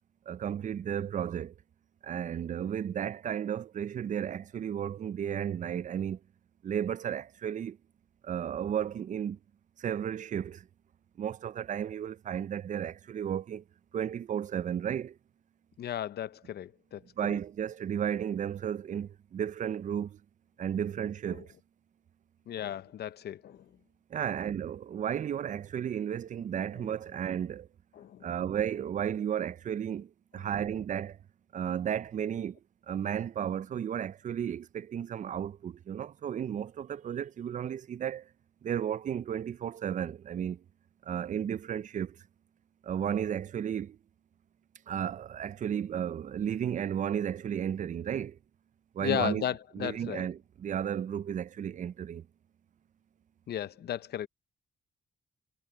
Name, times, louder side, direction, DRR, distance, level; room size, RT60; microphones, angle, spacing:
voice 1, 0.3-1.5 2.0-6.2 6.6-7.8 8.2-9.4 9.8-10.7 11.2-13.6 13.9-15.2 17.2-20.2 20.6-21.5 24.1-27.7 28.2-31.2 31.5-32.6 32.9-38.3 38.6-40.6 41.0-42.2 42.8-44.0 44.9-48.4 48.9-49.4 49.7-52.3, right 9 dB, 50° right, 0.4 m, -33 dB
voice 2, 15.8-17.4 21.3-21.4 22.5-23.7 26.8-26.9 27.9-28.3 49.0-50.3 53.5-54.3, left 11 dB, 75° left, 0.7 m, -35 dB
cardioid pair, 85°, 17 cm